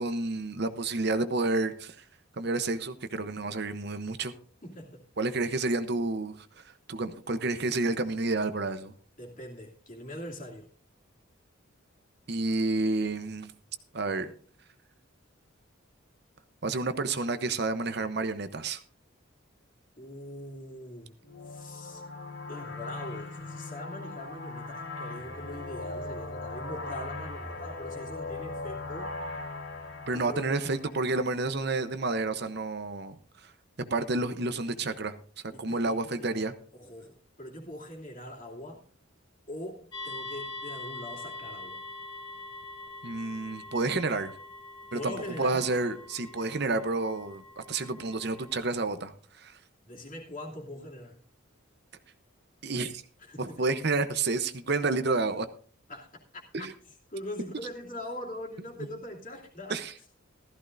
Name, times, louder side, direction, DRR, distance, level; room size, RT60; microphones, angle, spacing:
voice 1, 0.0-2.0 2.4-4.3 5.2-8.9 12.3-13.5 13.9-14.3 16.6-18.8 30.1-33.1 33.4-33.5 33.8-35.2 35.4-36.5 43.0-44.3 44.9-49.6 52.6-53.0 53.4-55.5 56.5-56.7 59.7-59.9, right 3 dB, 50° right, 0.8 m, -30 dB
voice 2, 4.6-5.1 9.2-10.7 20.0-21.2 21.4-22.0 22.5-29.2 30.1-30.5 35.5-36.4 36.7-38.9 39.5-41.8 44.9-45.7 49.8-51.2 53.2-53.6 55.9-59.8, left 1 dB, 40° left, 2.7 m, -42 dB
sound 1, 21.2-31.6, left 2 dB, 70° left, 3.2 m, -39 dB
sound 2, 39.9-48.6, left 2 dB, 20° left, 2.1 m, -43 dB
15.5 x 14.0 x 2.6 m
head